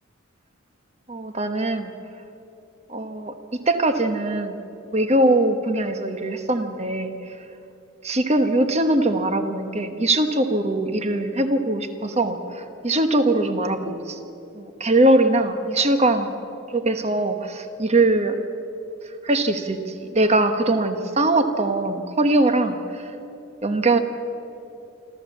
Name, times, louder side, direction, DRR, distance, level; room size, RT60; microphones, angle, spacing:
voice 1, 1.1-1.9 2.9-3.3 3.7-4.6 4.9-7.1 8.0-14.2 14.5-16.3 16.7-18.4 19.2-22.8 23.6-24.0, right 2 dB, 30° right, 8 dB, 1.1 m, -21 dB
26.0 x 14.0 x 7.2 m, 2.8 s
head